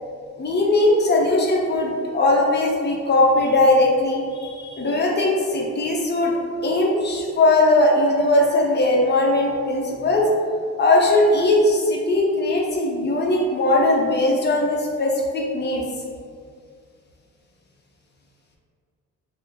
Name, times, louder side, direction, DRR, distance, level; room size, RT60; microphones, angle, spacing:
voice 1, 0.4-10.3 10.8-15.8, left 2 dB, 35° left, -1 dB, 0.6 m, -19 dB
3.0 x 2.0 x 3.6 m, 2.2 s
cardioid pair, 90°, 30 cm